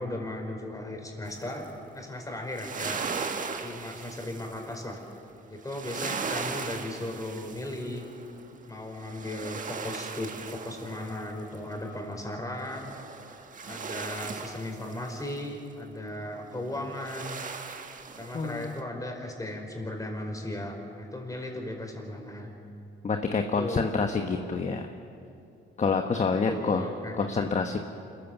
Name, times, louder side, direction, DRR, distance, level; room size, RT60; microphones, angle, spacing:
voice 1, 0.0-1.7 1.9-3.0 3.6-5.0 5.5-8.0 8.7-13.0 13.6-17.4 18.2-22.5 23.2-23.9 26.5-27.7, left 1 dB, 15° left, 2 dB, 4.6 m, -36 dB
sound 1, 1.3-1.7 2.3-5.0 5.6-8.4 8.8-11.8 12.7-15.4 16.7-18.8, right 5 dB, 40° right, 1.5 m, -38 dB
voice 2, 18.3-18.8 23.0-24.9 25.8-26.9 27.2-27.8, left 4 dB, 35° left, 5 dB, 1.2 m, -27 dB
27.0 x 14.5 x 7.2 m, 2.6 s
cardioid pair, 90°, 20 cm